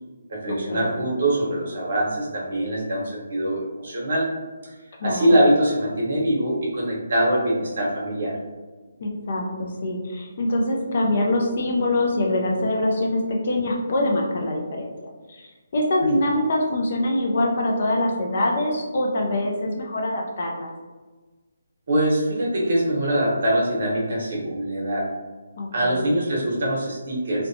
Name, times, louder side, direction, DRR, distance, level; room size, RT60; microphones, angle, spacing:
voice 1, 0.3-4.3 4.6-4.7 5.0-8.4 21.9-25.1 25.7-27.5, right 1 dB, 45° right, -4 dB, 0.8 m, -23 dB
voice 2, 5.0-5.4 9.0-14.9 15.3-20.7 25.6-26.0, left 1 dB, 40° left, 0 dB, 0.4 m, -24 dB
2.7 x 2.1 x 2.6 m, 1.3 s
hypercardioid pair, 175°, 0 cm